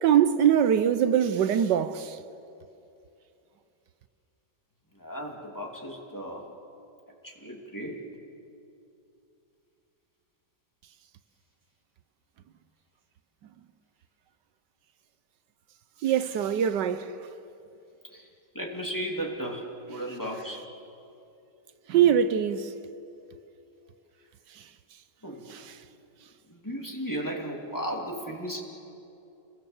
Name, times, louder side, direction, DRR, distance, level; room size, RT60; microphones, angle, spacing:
voice 1, 0.0-2.2 16.0-17.1 21.9-22.7 25.5-25.6, right 9 dB, 75° right, 1.4 m, -23 dB
voice 2, 4.9-6.4 7.2-8.0 18.1-18.3 18.5-20.6 25.2-25.6 26.5-28.6, equal, 10° left, 2.6 m, -35 dB
29.5 x 21.5 x 7.2 m
omnidirectional pair, 1.9 m